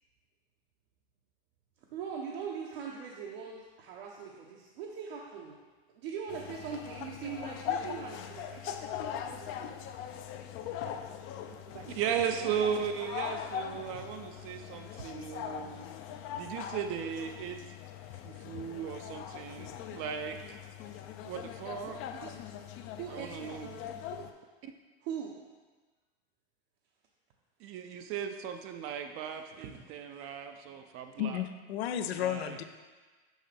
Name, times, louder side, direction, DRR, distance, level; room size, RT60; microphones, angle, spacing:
voice 1, 1.9-5.6 5.9-9.8 14.5-14.7 22.1-22.4 23.0-24.3 25.0-25.4 29.2-29.7 30.4-30.7, right 6 dB, 70° right, -3 dB, 0.9 m, -42 dB
sound 1, 6.3-24.3, left 9 dB, 40° left, 0.5 m, -41 dB
voice 2, 11.7-15.9 16.4-17.6 18.2-20.4 21.2-22.0 23.1-23.7 27.6-31.4 32.2-32.6, right 8 dB, 45° right, 6 dB, 0.5 m, -36 dB
voice 3, 31.2-32.6, left 10 dB, 85° left, 9 dB, 0.6 m, -33 dB
6.3 x 5.5 x 3.4 m, 1.3 s
supercardioid pair, 120°, 31 cm